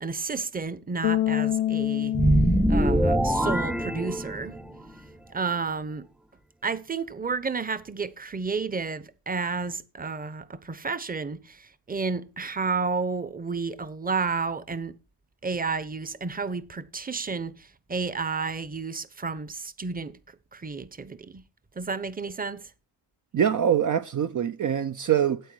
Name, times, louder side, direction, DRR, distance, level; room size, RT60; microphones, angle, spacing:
voice 1, 0.0-2.2 2.7-4.6 5.3-6.1 6.6-14.9 15.4-21.4 21.7-22.7, right 4 dB, 20° right, 1.0 m, -31 dB
Bass guitar, 1.0-4.2, left 12 dB, 90° left, 0.8 m, -28 dB
sound 1, 2.1-4.7, right 1 dB, ahead, 0.4 m, -23 dB
voice 2, 23.3-25.4, right 9 dB, 45° right, 0.7 m, -24 dB
9.3 x 7.9 x 4.6 m
cardioid pair, 70°, 42 cm